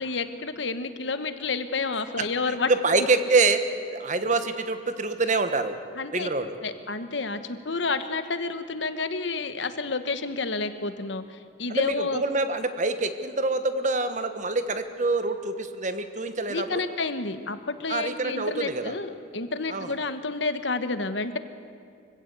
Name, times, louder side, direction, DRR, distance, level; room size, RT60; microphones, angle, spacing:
voice 1, 0.0-2.7 5.9-6.3 6.6-12.2 16.5-21.4, left 3 dB, 70° left, 10 dB, 1.2 m, -30 dB
voice 2, 2.2-3.6 3.9-5.7 6.1-6.6 11.7-16.8 17.9-18.9 19.7-19.9, right 3 dB, 40° right, 9 dB, 1.3 m, -26 dB
24.5 x 16.0 x 8.2 m, 2.4 s
head